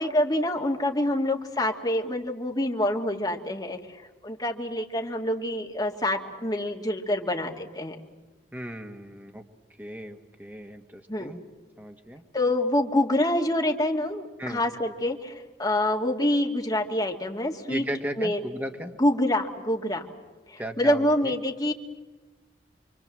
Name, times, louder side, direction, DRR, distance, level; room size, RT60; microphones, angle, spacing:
voice 1, 0.0-8.0 11.1-11.3 12.3-17.8 18.2-18.4 19.0-20.1 20.5-21.7, left 1 dB, 20° left, 1 dB, 2.3 m, -26 dB
voice 2, 8.5-9.4 9.8-11.4 11.8-12.2 14.4-14.6 17.7-18.9 20.6-21.3, equal, 10° right, 4 dB, 1.7 m, -36 dB
28.0 x 24.0 x 7.6 m, 1.2 s
head